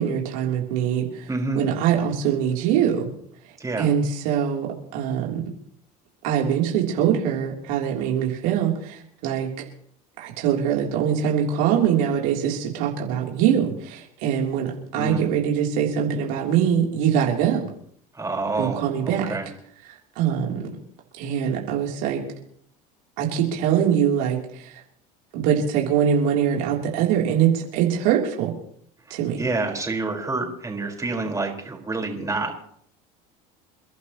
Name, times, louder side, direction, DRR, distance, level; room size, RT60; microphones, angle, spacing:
voice 1, 0.0-1.3 1.5-3.1 3.8-5.4 6.2-9.5 10.2-17.7 18.6-19.4 19.9-20.7 21.2-22.2 23.2-24.8 25.3-28.5 29.1-29.4, right 8 dB, 70° right, -1 dB, 3.3 m, -23 dB
voice 2, 1.3-1.6 3.6-3.9 14.9-15.3 18.1-19.5 29.1-32.6, right 3 dB, 15° right, 1 dB, 4.7 m, -28 dB
29.0 x 11.5 x 3.0 m, 0.65 s
hypercardioid pair, 85°, 19 cm